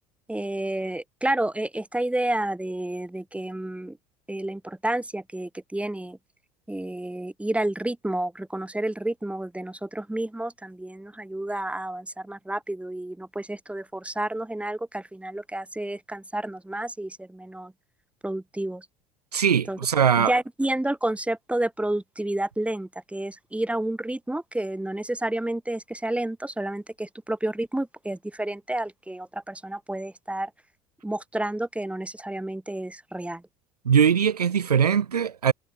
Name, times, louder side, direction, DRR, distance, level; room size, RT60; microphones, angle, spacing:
voice 1, 0.3-4.0 4.3-6.2 6.7-17.7 18.2-18.9 19.7-19.8 20.2-30.5 31.0-33.4, right 1 dB, 5° right, 3.1 m, -30 dB
voice 2, 19.3-20.3 33.9-35.5, right 7 dB, 85° right, 0.6 m, -21 dB
figure-of-eight pair, 60°, 20 cm